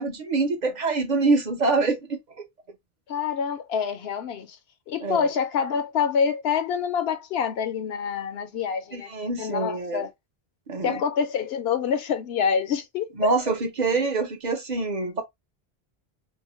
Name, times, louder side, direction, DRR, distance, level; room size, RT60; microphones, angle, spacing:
voice 1, 0.0-2.4 5.0-5.3 8.9-10.1 10.7-11.0 13.2-15.2, right 3 dB, 50° right, 0.7 m, -25 dB
voice 2, 3.1-4.6 4.9-9.1 9.4-10.1 10.8-13.3, left 7 dB, 80° left, 0.9 m, -26 dB
2.7 x 2.0 x 2.9 m
omnidirectional pair, 1.0 m